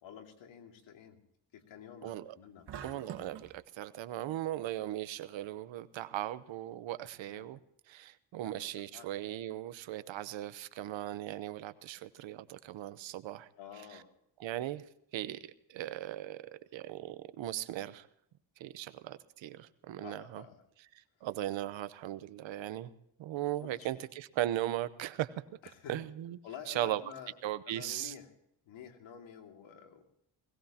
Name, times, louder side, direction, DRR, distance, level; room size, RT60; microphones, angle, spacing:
voice 1, 0.0-1.2 1.5-2.7 7.3-7.5 8.4-8.5 8.9-9.1 13.6-14.1 20.0-20.6 23.6-23.9 25.6-26.0 26.4-27.3 27.7-28.3 28.6-30.1, left 8 dB, 85° left, 3 dB, 2.7 m, -49 dB
voice 2, 2.0-2.3 2.8-7.6 7.9-13.5 14.4-14.8 15.1-15.4 15.7-16.4 16.7-18.1 18.6-20.4 21.2-22.9 23.2-25.3 25.9-26.4 26.7-27.0 27.4-28.1, right 13 dB, 80° right, 14 dB, 1.0 m, -38 dB
sound 1, 2.7-3.5, right 8 dB, 60° right, 2.0 m, -45 dB
20.5 x 18.0 x 2.9 m, 0.75 s
cardioid pair, 95°, 45 cm